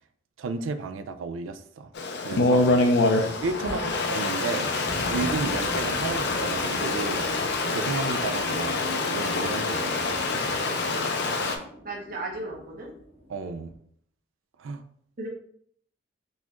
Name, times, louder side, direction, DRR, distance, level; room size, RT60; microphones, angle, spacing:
voice 1, 0.4-1.9 2.2-2.9 3.4-4.8 5.1-7.3 7.7-10.4 13.3-13.7 14.6-14.8, right 4 dB, 85° right, 10 dB, 0.4 m, -33 dB
Stream, 2.0-11.6, left 2 dB, 60° left, 0.5 m, -26 dB
voice 2, 3.6-4.0 11.8-12.9 15.2-15.3, right 2 dB, 45° right, -2 dB, 0.8 m, -35 dB
sound 1, 4.8-13.8, equal, 35° left, 0.8 m, -40 dB
4.0 x 2.9 x 2.5 m, 0.63 s
head